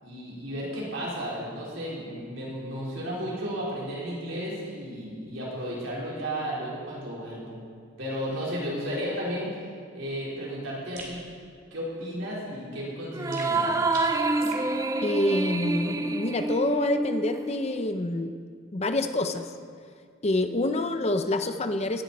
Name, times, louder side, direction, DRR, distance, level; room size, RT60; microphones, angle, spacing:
voice 1, 0.0-7.6 8.0-11.2 11.7-13.7, equal, 70° right, -6 dB, 4.2 m, -33 dB
sound 1, 11.0-11.2 13.3-14.7, right 3 dB, 45° right, 2.6 m, -41 dB
sound 2, 13.1-17.9, right 2 dB, 15° right, 0.4 m, -28 dB
voice 2, 15.0-18.3 18.7-19.5 20.2-22.0, left 1 dB, 30° left, 8 dB, 0.6 m, -27 dB
17.5 x 10.5 x 4.3 m, 2.1 s
head